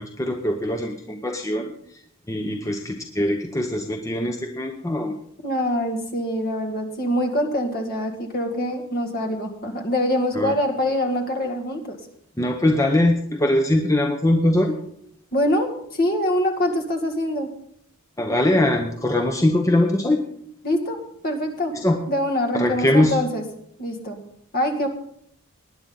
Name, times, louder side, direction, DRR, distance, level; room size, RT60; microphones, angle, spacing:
voice 1, 0.0-2.0 2.3-5.2 10.3-10.5 12.4-14.8 18.2-20.3 21.7-22.0 22.5-23.2, left 1 dB, 15° left, 4 dB, 0.8 m, -22 dB
voice 2, 5.4-12.0 15.3-17.5 20.6-21.7 22.1-23.4 23.8-24.2 24.5-24.9, left 1 dB, 45° left, 4 dB, 2.2 m, -24 dB
19.5 x 9.9 x 4.0 m, 0.68 s
head